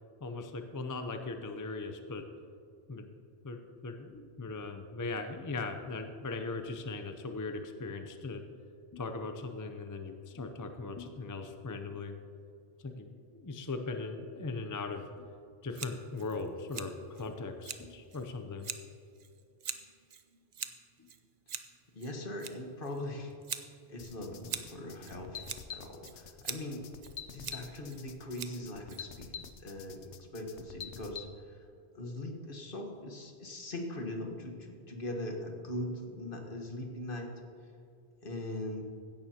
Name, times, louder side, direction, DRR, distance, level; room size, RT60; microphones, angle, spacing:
voice 1, 0.2-2.2 2.9-3.1 3.4-8.4 8.9-12.1 12.8-15.2 15.6-18.7 21.0-21.1, left 3 dB, 25° left, 6 dB, 0.4 m, -39 dB
Scissors, 15.7-29.5, right 7 dB, 45° right, 0.6 m, -45 dB
voice 2, 21.9-23.3 23.9-26.9 27.3-30.1 30.3-31.6 31.9-37.3 38.2-38.8, left 1 dB, 50° left, 2 dB, 1.5 m, -41 dB
sound 1, 24.0-31.3, left 7 dB, 90° left, 1.0 m, -46 dB
16.0 x 11.0 x 2.9 m, 2.3 s
omnidirectional pair, 1.1 m